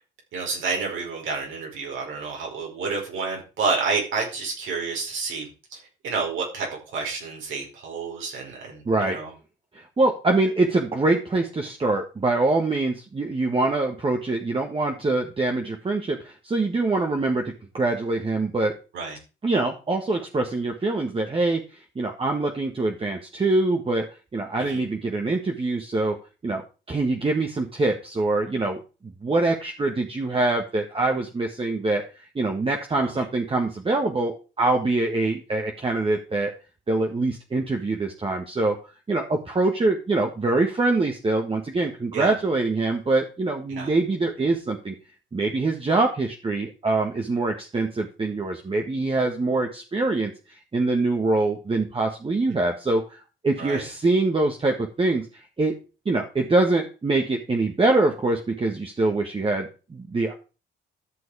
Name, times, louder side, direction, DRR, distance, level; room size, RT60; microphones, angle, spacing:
voice 1, 0.3-9.3 18.9-19.2 24.6-24.8 32.9-33.2 42.1-42.3 43.7-43.9 52.5-52.6 53.6-53.9, right 4 dB, 75° right, 0 dB, 5.0 m, -30 dB
voice 2, 8.9-9.2 9.7-18.7 19.4-21.6 22.0-24.1 24.3-26.2 26.4-26.6 26.9-32.0 32.4-36.5 36.9-38.8 39.1-44.9 45.3-50.3 50.7-53.2 53.4-55.3 55.6-55.7 56.1-60.3, right 2 dB, 25° right, 1 dB, 1.8 m, -24 dB
13.0 x 6.2 x 4.9 m, 0.33 s
cardioid pair, 90°, 20 cm